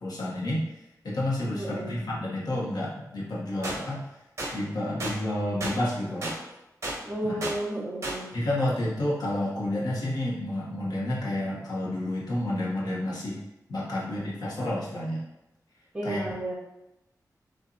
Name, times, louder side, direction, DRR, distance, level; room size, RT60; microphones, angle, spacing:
voice 1, 0.0-0.7 1.0-4.0 4.5-6.4 7.2-7.4 8.3-13.4 13.7-15.2 16.0-16.3, left 1 dB, 75° left, -5 dB, 1.3 m, -30 dB
voice 2, 1.6-2.0 7.0-8.3 15.9-16.6, right 1 dB, 15° right, -7 dB, 1.6 m, -32 dB
sound 1, 3.6-3.8 4.4-4.5 5.0-5.2 5.6-5.8 6.2-6.4 6.8-7.0 7.4-7.6 8.0-8.2, right 2 dB, 45° right, 1.2 m, -32 dB
6.4 x 2.6 x 2.9 m, 0.92 s
wide cardioid pair, 140°, 7 cm